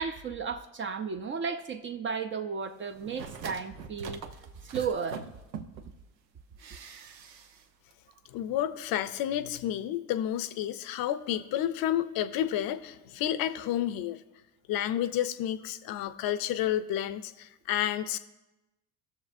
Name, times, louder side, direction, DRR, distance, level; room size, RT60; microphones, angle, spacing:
voice 1, 0.0-4.2 4.6-5.2, right 6 dB, 25° right, 0.5 m, -34 dB
sound 1, 2.9-5.9 6.6-7.6 7.9-8.0, right 6 dB, 85° right, 0.8 m, -43 dB
voice 2, 8.3-14.2 14.7-18.2, left 11 dB, 45° left, 0.6 m, -30 dB
18.0 x 6.5 x 2.6 m
figure-of-eight pair, 65°, 50 cm